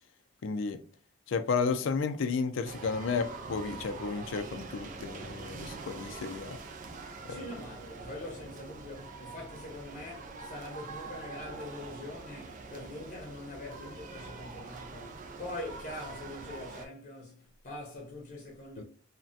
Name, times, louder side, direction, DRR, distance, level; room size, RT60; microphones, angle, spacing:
voice 1, 0.4-0.8 1.3-6.6 7.3-7.5 18.8-18.9, left 5 dB, 80° left, 0.4 m, -32 dB
sound 1, 2.6-16.9, right 3 dB, 40° right, 0.4 m, -44 dB
voice 2, 7.3-18.8, left 1 dB, 40° left, 0.7 m, -43 dB
3.2 x 2.2 x 2.5 m
head